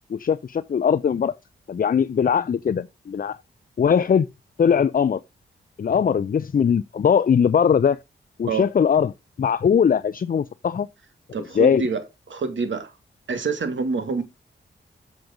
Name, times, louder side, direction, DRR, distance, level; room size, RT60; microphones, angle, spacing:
voice 1, 0.1-1.3 1.7-3.4 3.8-4.3 4.6-5.2 5.8-8.0 8.4-9.1 9.4-10.9 11.5-11.8, left 7 dB, 45° left, 0.5 m, -20 dB
voice 2, 11.3-12.0 12.3-12.9 13.3-14.2, right 4 dB, 65° right, 2.1 m, -26 dB
7.7 x 5.2 x 5.2 m
supercardioid pair, 40°, 21 cm